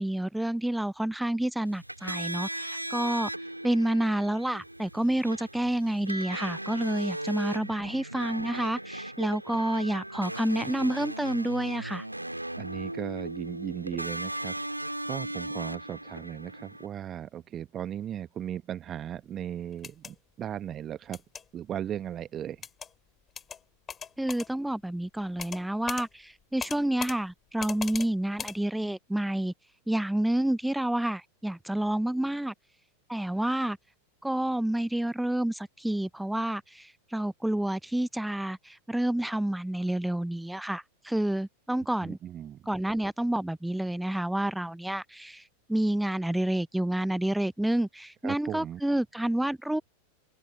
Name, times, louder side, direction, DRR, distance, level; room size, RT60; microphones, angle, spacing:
voice 1, 0.0-3.3 3.6-12.0 24.2-29.5 29.9-32.5 33.1-33.8 34.2-42.2 42.7-45.4 45.7-49.8, right 1 dB, 5° right, 0.5 m, -29 dB
sound 1, 1.7-16.9, right 1 dB, 85° right, 2.2 m, -37 dB
voice 2, 12.6-14.5 14.9-21.2 21.5-22.6 42.0-42.6 48.2-48.8, right 10 dB, 30° right, 1.0 m, -37 dB
sound 2, 19.7-20.1 21.1-21.4 22.6-22.9 23.4-23.6 23.9-24.5 25.4-25.6 25.9-26.1 26.6-27.2 27.6-28.1 28.4-28.6, left 7 dB, 20° left, 3.5 m, -38 dB
figure-of-eight pair, 90°, 0 cm